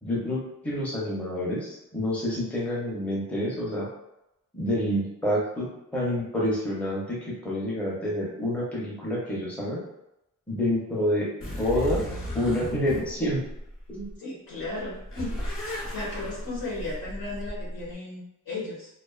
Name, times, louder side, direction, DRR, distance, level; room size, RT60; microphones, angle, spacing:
voice 1, 0.0-3.9 4.5-9.8 10.5-11.3 11.6-12.0 12.3-13.4 13.9-14.1, left 1 dB, 5° left, -5 dB, 0.5 m, -28 dB
sound 1, 11.4-14.1 14.6-17.9, left 1 dB, 40° left, 0.8 m, -35 dB
voice 2, 14.2-15.3 15.9-18.9, left 2 dB, 90° left, -6 dB, 1.1 m, -35 dB
2.4 x 2.2 x 2.3 m, 0.86 s
wide cardioid pair, 140°, 34 cm